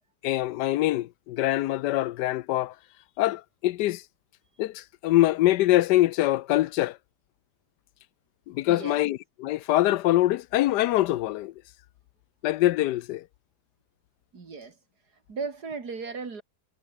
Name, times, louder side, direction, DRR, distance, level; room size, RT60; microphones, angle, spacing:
voice 1, 0.2-2.7 3.2-4.0 4.6-7.0 8.5-11.5 12.4-13.2, left 15 dB, 80° left, 1.2 m, -24 dB
voice 2, 8.7-9.0 14.3-14.8 15.3-16.4, right 4 dB, 65° right, 3.4 m, -36 dB
omnidirectional pair, 1.8 m